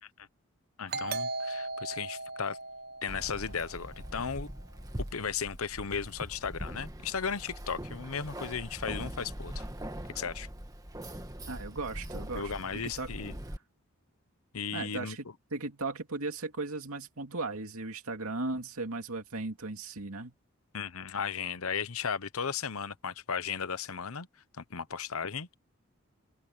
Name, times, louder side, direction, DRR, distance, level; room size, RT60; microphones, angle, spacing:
voice 1, 0.8-2.6 3.0-4.5 5.1-9.6 10.1-10.5 12.3-13.3 14.5-15.2 20.7-24.3 24.6-25.6, left 6 dB, 85° left, 1.0 m, -35 dB
Doorbell, 0.9-4.3, right 2 dB, 45° right, 0.9 m, -38 dB
Keys jangling, 3.1-13.6, right 1 dB, 15° right, 1.7 m, -42 dB
voice 2, 11.5-12.5 12.8-13.1 14.7-20.3, right 3 dB, 90° right, 2.5 m, -37 dB
open air
head